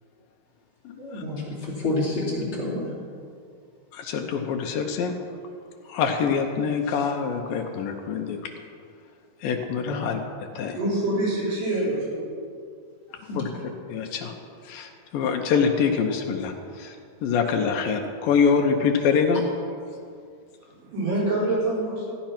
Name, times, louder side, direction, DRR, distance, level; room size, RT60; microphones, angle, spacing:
voice 1, 1.0-2.9 9.8-10.0 13.3-13.4, left 2 dB, 35° left, -6 dB, 3.0 m, -28 dB
voice 2, 3.9-5.1 5.9-8.5 9.4-10.2 10.6-10.8 13.4-13.5 13.9-14.3 14.6-17.0 17.2-19.4, left 6 dB, 75° left, 3 dB, 2.3 m, -25 dB
voice 3, 10.7-12.3 20.8-22.1, right 2 dB, 85° right, -7 dB, 6.3 m, -25 dB
15.0 x 10.0 x 5.9 m, 2.3 s
omnidirectional pair, 4.6 m